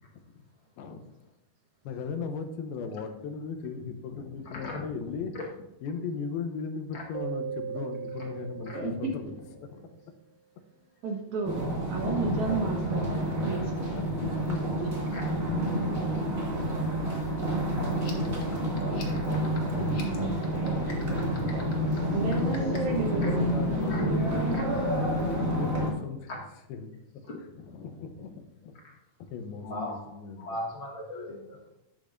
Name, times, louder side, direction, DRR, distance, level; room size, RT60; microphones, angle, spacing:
voice 1, 1.8-5.4 5.8-10.0 13.5-15.0 17.9-19.3 20.1-20.9 21.3-21.8 22.3-24.7 25.3-26.3 26.7-26.9 27.1-27.2 27.6-28.8 29.3-30.5, left 5 dB, 90° left, 7 dB, 2.8 m, -38 dB
Keyboard (musical), 7.1-9.9, right 9 dB, 85° right, 2.4 m, -39 dB
voice 2, 11.0-11.6 11.9-13.9 22.1-23.3, right 4 dB, 65° right, 1 dB, 2.1 m, -32 dB
sound 1, 11.4-25.9, right 1 dB, 30° right, 2.0 m, -29 dB
sound 2, 17.9-23.0, left 4 dB, 70° left, 0.8 m, -47 dB
voice 3, 29.6-30.0 30.4-31.6, left 1 dB, 40° left, -3 dB, 2.3 m, -38 dB
12.0 x 8.3 x 2.6 m, 0.90 s
omnidirectional pair, 4.2 m